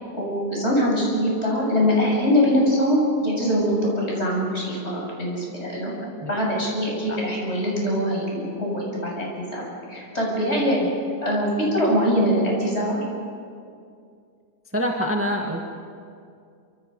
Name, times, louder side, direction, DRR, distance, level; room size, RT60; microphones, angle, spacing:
voice 1, 0.1-5.9 6.3-9.6 9.9-10.8 11.2-13.0, equal, 45° left, -3 dB, 7.6 m, -23 dB
voice 2, 14.7-15.6, equal, 10° right, 0 dB, 1.7 m, -25 dB
27.0 x 26.0 x 5.4 m, 2.3 s
omnidirectional pair, 1.6 m